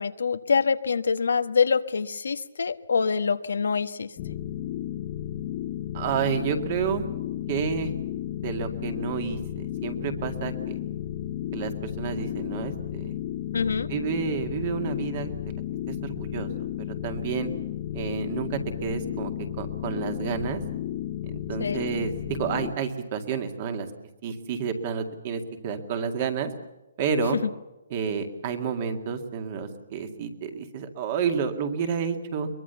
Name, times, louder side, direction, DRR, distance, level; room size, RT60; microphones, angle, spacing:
voice 1, 0.0-4.1 13.5-13.9 21.6-21.8, left 5 dB, 80° left, 11 dB, 1.3 m, -25 dB
sound 1, 4.2-22.7, left 11 dB, 25° left, 1.3 m, -33 dB
voice 2, 5.9-7.1 7.5-7.9 8.4-10.8 11.5-13.1 13.9-15.5 15.9-16.5 17.0-17.5 17.9-20.6 21.3-23.9 24.2-26.5 27.0-27.4 27.9-32.5, right 6 dB, 25° right, 7 dB, 2.1 m, -30 dB
22.5 x 22.5 x 6.9 m, 0.99 s
hypercardioid pair, 175°, 0 cm